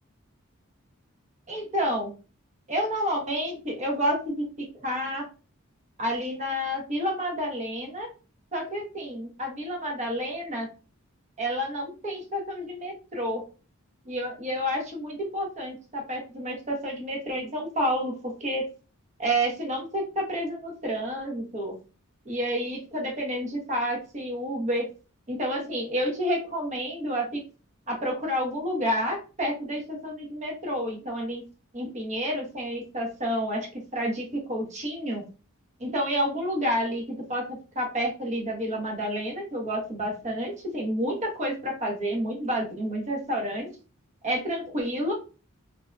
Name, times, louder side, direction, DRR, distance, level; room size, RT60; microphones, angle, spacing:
voice 1, 1.5-2.1 2.7-5.2 6.0-8.1 8.5-10.7 11.4-13.4 14.0-18.6 19.2-21.7 22.2-24.9 25.3-27.4 27.9-31.4 31.7-35.2 35.8-37.4 37.7-43.7 44.2-45.1, equal, 35° right, 0 dB, 0.9 m, -29 dB
2.7 x 2.2 x 2.4 m, 0.34 s
head